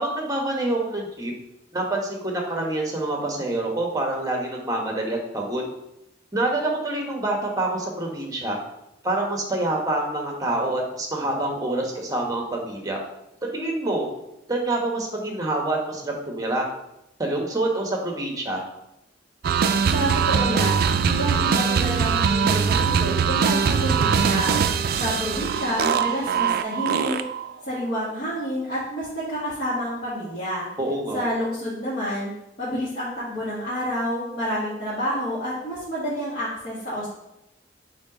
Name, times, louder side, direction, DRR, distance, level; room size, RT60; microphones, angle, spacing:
voice 1, 0.0-1.3 1.7-5.6 6.3-8.6 9.0-13.0 13.5-14.1 14.5-16.7 17.2-18.7 30.8-31.2, right 2 dB, 20° right, 1 dB, 1.1 m, -26 dB
sound 1, 19.4-27.5, right 6 dB, 55° right, 0.3 m, -22 dB
voice 2, 19.9-24.5 24.9-27.2 27.6-30.7 31.1-32.3 32.6-37.1, equal, 50° left, -11 dB, 2.1 m, -29 dB
5.3 x 3.9 x 4.9 m, 0.87 s
head